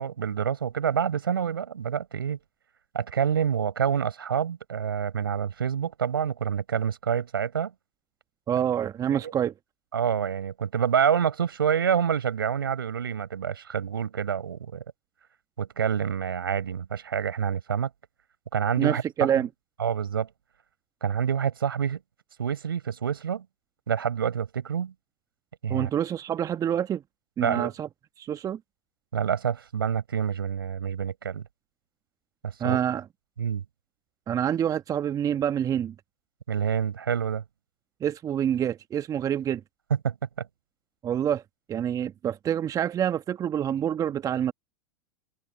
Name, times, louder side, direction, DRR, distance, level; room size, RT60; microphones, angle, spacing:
voice 1, 0.0-2.4 2.9-7.7 9.1-9.3 9.9-14.8 15.6-17.9 18.5-19.3 19.8-20.3 21.0-22.0 22.4-23.4 23.9-24.9 25.6-25.9 27.4-27.7 29.1-31.4 32.4-32.8 33.4-33.6 36.5-37.4 40.0-40.5, right 8 dB, 80° right, 4.5 m, -27 dB
voice 2, 8.5-9.5 18.8-19.5 25.7-27.0 27.4-27.9 28.2-28.6 32.6-33.1 34.3-35.9 38.0-39.6 41.0-41.4 41.7-44.5, right 9 dB, 30° right, 1.2 m, -27 dB
hypercardioid pair, 90°, 12 cm